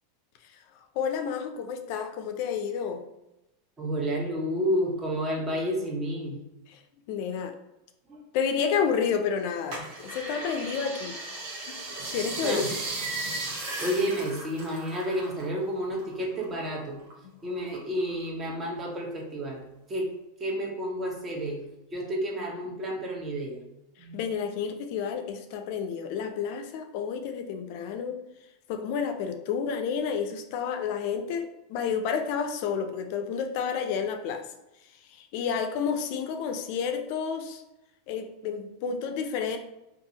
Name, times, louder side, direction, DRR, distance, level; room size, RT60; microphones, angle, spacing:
voice 1, 1.0-3.0 6.7-6.8 7.1-7.6 8.3-11.2 11.7-11.8 12.1-12.7 17.2-17.3 24.1-28.2 28.7-34.5 35.1-37.6 38.1-39.6, left 6 dB, 55° left, 6 dB, 0.3 m, -30 dB
voice 2, 3.8-6.4 8.1-8.2 12.4-12.7 13.8-17.1 17.4-20.1 20.4-23.6 24.0-24.2, equal, 20° right, -1 dB, 0.8 m, -30 dB
sound 1, 9.7-15.5 15.8-17.1 17.6-18.4 18.9-19.0, right 2 dB, 60° right, 0.9 m, -36 dB
2.6 x 2.4 x 2.7 m, 0.91 s
supercardioid pair, 135°, 0 cm